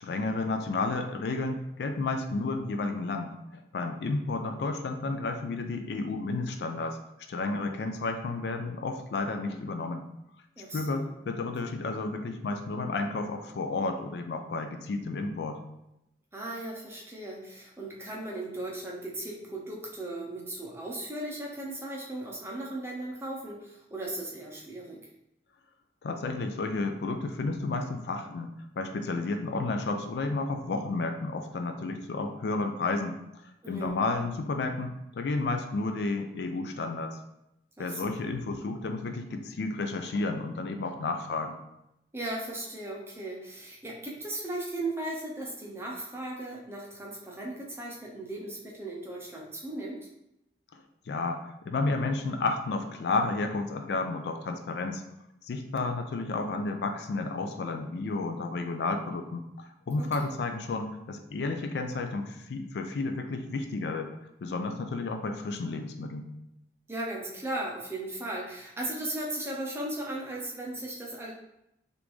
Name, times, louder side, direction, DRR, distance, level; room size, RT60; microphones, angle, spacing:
voice 1, 0.0-7.0 7.3-10.0 10.7-15.6 26.0-33.2 33.7-37.2 37.8-41.6 50.7-50.8 51.1-55.0 55.4-59.5 59.9-64.1 64.4-66.3, left 3 dB, 70° left, 6 dB, 0.3 m, -32 dB
voice 2, 10.6-11.1 16.3-25.0 33.6-34.0 37.8-38.2 42.1-50.1 60.0-60.3 66.9-71.3, right 1 dB, 15° right, -2 dB, 0.6 m, -37 dB
3.5 x 2.5 x 3.0 m, 0.84 s
head